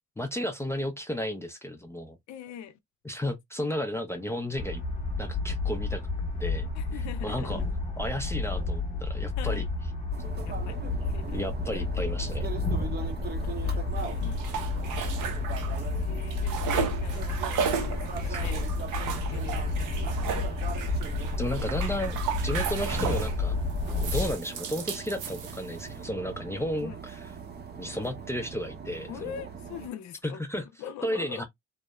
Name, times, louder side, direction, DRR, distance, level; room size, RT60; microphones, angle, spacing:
voice 1, 0.2-2.2 3.0-4.8 5.2-6.0 6.3-7.6 8.0-9.6 11.3-12.5 15.0-15.1 18.3-18.7 21.4-22.2 22.4-23.5 24.0-27.3 27.8-29.3 30.2-30.7 31.0-31.4, left 1 dB, 10° left, 0.4 m, -33 dB
voice 2, 2.3-2.8 6.7-7.6 9.4-9.6 10.4-11.8 12.8-15.2 15.9-20.6 21.2-21.7 26.8-27.0 29.1-30.4 30.8-31.4, left 9 dB, 65° left, 0.5 m, -44 dB
sound 1, 4.5-24.3, left 3 dB, 25° left, 1.0 m, -31 dB
sound 2, 10.1-29.9, right 5 dB, 35° right, 0.7 m, -41 dB
sound 3, 14.0-15.9 16.2-23.4 23.9-25.9, right 7 dB, 90° right, 0.7 m, -34 dB
2.8 x 2.1 x 2.2 m
cardioid pair, 90°, 30 cm